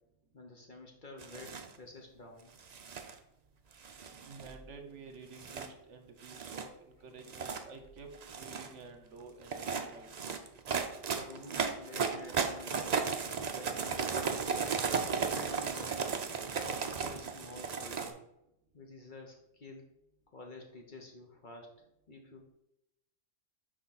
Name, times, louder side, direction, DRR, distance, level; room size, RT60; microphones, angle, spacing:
voice 1, 0.3-2.5 11.1-13.1 13.5-14.8 15.2-16.1 16.6-18.3 18.7-19.8 20.3-21.7 22.1-22.5, left 2 dB, 40° left, 2 dB, 1.0 m, -50 dB
sound 1, 1.2-1.7 2.6-3.1 3.8-4.6 5.3-5.7 6.2-6.6 7.2-7.6 8.1-8.7 9.4-18.1, right 6 dB, 45° right, 0.5 m, -35 dB
voice 2, 4.3-10.1, right 3 dB, 65° right, 6 dB, 1.1 m, -51 dB
6.3 x 4.8 x 4.1 m, 0.83 s
omnidirectional pair, 1.3 m